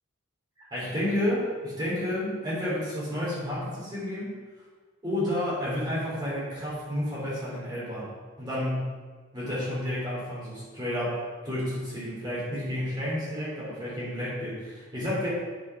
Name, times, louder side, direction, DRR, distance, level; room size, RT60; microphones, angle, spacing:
voice 1, 0.6-4.3 5.0-8.1 8.4-8.8 9.3-15.3, left 1 dB, 20° right, -8 dB, 3.4 m, -31 dB
9.2 x 6.8 x 6.0 m, 1.5 s
head